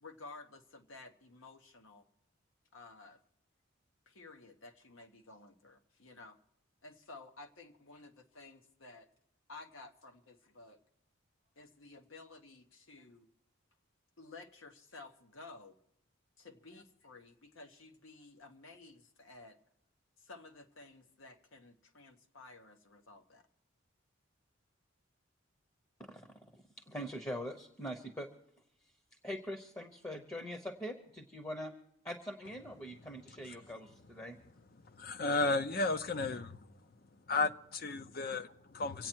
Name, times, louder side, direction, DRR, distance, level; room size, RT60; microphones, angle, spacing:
voice 1, 0.0-2.0 2.7-3.2 4.1-6.4 6.8-9.1 9.5-10.8 11.6-13.3 14.2-15.8 16.4-19.6 20.2-23.5, left 3 dB, 80° left, 1.1 m, -54 dB
voice 2, 26.5-28.3 29.2-31.7 32.0-34.4, equal, 15° left, 0.8 m, -43 dB
voice 3, 34.8-36.7 37.3-39.1, left 3 dB, 45° left, 0.6 m, -34 dB
26.0 x 8.7 x 4.5 m
head